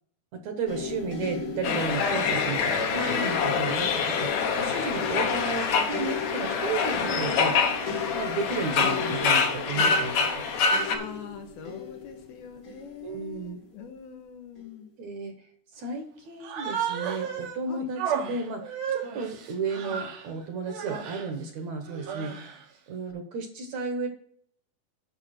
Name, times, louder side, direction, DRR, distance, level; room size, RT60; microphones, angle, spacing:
voice 1, 0.3-7.6 8.1-10.4 13.0-13.6 15.0-15.3 15.7-22.4 22.9-24.1, right 4 dB, 60° right, 5 dB, 2.1 m, -33 dB
sound 1, 0.7-13.7 14.6-14.7, left 4 dB, 35° left, 1.4 m, -37 dB
sound 2, 1.6-11.0, left 5 dB, 65° left, 2.0 m, -26 dB
voice 2, 3.7-4.4 10.9-14.9 17.7-17.9, left 7 dB, 85° left, 4 dB, 3.2 m, -43 dB
Human voice, 16.4-17.6 18.0-20.3 20.7-21.3 21.9-22.6, right 8 dB, 85° right, 3.3 m, -33 dB
9.9 x 7.0 x 4.3 m, 0.62 s
omnidirectional pair, 4.2 m